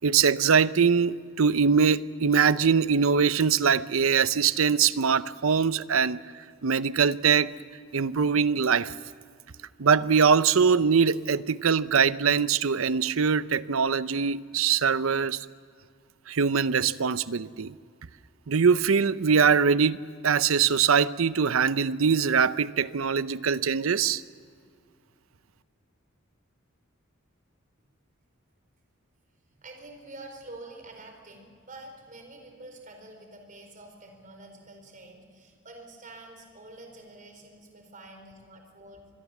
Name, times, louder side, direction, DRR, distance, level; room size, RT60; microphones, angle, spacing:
voice 1, 0.0-6.2 6.6-7.5 7.9-8.9 9.8-15.5 16.3-17.7 18.5-20.0 20.2-24.2, right 6 dB, 85° right, 16 dB, 0.7 m, -22 dB
voice 2, 29.5-39.1, right 2 dB, 40° right, 4 dB, 4.4 m, -47 dB
26.0 x 22.0 x 7.2 m, 2.1 s
head